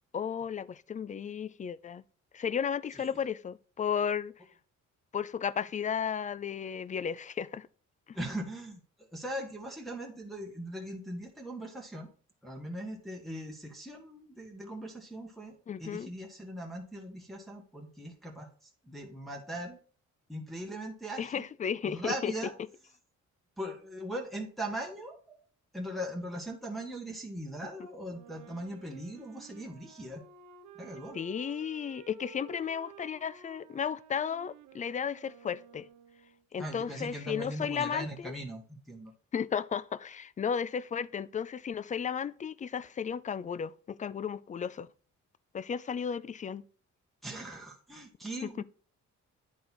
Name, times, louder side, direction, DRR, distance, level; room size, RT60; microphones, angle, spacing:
voice 1, 0.1-2.0 2.3-4.3 5.1-7.7 8.1-8.2 15.7-16.1 21.2-22.3 31.1-35.9 36.5-38.3 39.3-44.9 45.5-46.6 48.4-48.6, left 7 dB, 25° left, 0.4 m, -34 dB
voice 2, 8.1-12.1 12.4-18.5 18.8-19.8 20.3-21.4 21.8-22.5 23.6-25.4 25.7-30.2 30.8-31.2 36.6-39.1 47.2-48.6, right 1 dB, ahead, 1.4 m, -40 dB
Wind instrument woodwind instrument, 28.1-36.4, right 8 dB, 75° right, 1.0 m, -53 dB
9.5 x 3.9 x 4.4 m
cardioid pair, 90°, 30 cm